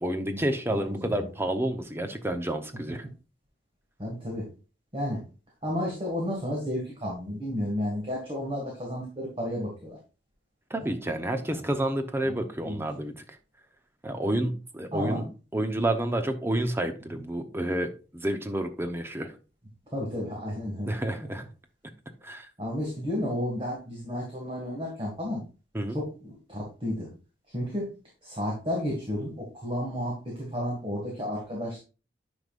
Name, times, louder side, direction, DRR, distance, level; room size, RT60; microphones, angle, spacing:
voice 1, 0.0-3.1 10.7-13.4 14.0-15.3 15.5-19.3 20.8-21.4 22.2-22.5 25.7-26.0, right 1 dB, 15° right, 6 dB, 0.8 m, -29 dB
voice 2, 0.7-1.3 4.0-4.5 4.9-5.3 5.6-10.0 11.3-11.6 12.2-12.4 12.6-12.8 14.2-14.4 14.9-15.2 19.9-20.9 22.6-25.4 25.9-27.1 27.5-27.9 28.2-31.8, equal, 30° right, -1 dB, 2.0 m, -32 dB
9.8 x 5.3 x 2.5 m, 0.32 s
head